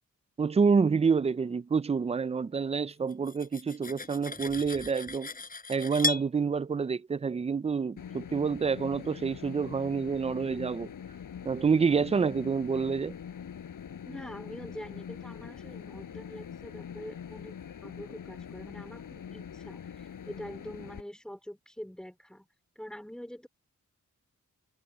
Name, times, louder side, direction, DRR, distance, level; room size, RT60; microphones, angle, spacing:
voice 1, 0.4-5.3 5.7-10.9 11.5-13.1, right 5 dB, 20° right, 0.4 m, -28 dB
Cutlery silverware, 3.1-6.3, left 4 dB, 25° left, 4.7 m, -35 dB
sound 1, 8.0-21.0, left 8 dB, 85° left, 6.6 m, -43 dB
voice 2, 14.0-22.5 22.8-23.5, equal, ahead, 4.3 m, -45 dB
wide cardioid pair, 140°, 31 cm